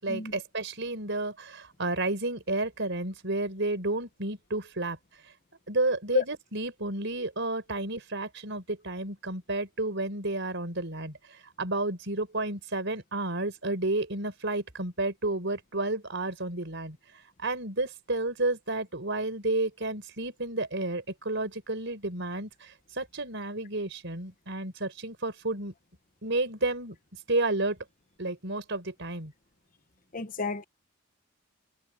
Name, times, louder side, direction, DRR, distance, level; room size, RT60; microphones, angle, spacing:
voice 1, 0.0-5.2 5.7-25.7 26.2-27.0 27.3-27.8 28.2-29.3, right 2 dB, 55° right, 5.1 m, -31 dB
voice 2, 30.1-30.6, left 3 dB, 40° left, 1.1 m, -29 dB
head